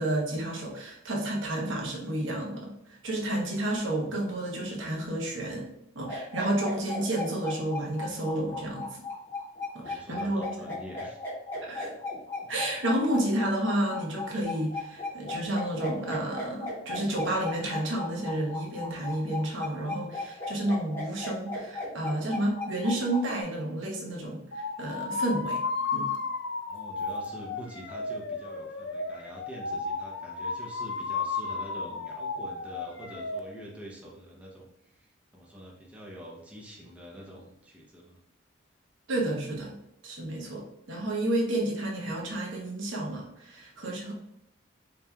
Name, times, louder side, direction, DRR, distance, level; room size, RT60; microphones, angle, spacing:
voice 1, 0.0-9.0 9.7-10.7 11.7-11.9 12.5-25.6 25.9-26.1 39.1-39.8 40.0-44.1, right 1 dB, 80° right, 0 dB, 1.0 m, -31 dB
sound 1, 6.0-23.4, left 3 dB, 10° left, 1.0 m, -36 dB
voice 2, 9.8-11.2 26.6-38.2, equal, 5° right, -3 dB, 0.6 m, -46 dB
sound 2, 24.5-33.4, left 4 dB, 65° left, 0.5 m, -33 dB
5.3 x 2.8 x 2.3 m, 0.83 s
head